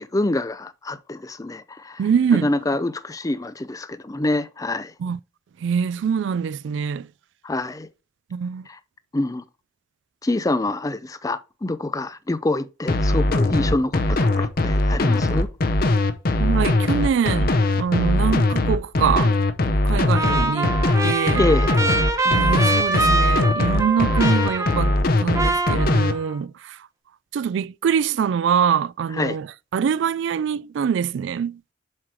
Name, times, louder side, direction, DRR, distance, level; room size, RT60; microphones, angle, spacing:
voice 1, 0.0-2.0 2.4-4.9 7.4-7.9 8.7-8.8 9.1-9.4 10.2-15.5 21.4-21.7 29.2-29.4, left 2 dB, 15° left, 0.4 m, -26 dB
voice 2, 2.0-2.5 5.0-5.2 5.6-7.1 8.3-8.7 16.4-19.3 19.8-20.8 21.0-21.4 22.2-25.0 25.2-26.8 27.3-29.5 29.7-31.6, right 7 dB, 70° right, 0.3 m, -24 dB
sound 1, 12.9-26.1, left 2 dB, 50° left, 0.7 m, -20 dB
Trumpet, 20.1-25.1 25.3-26.4, right 2 dB, 15° right, 0.8 m, -24 dB
7.5 x 3.1 x 4.8 m
head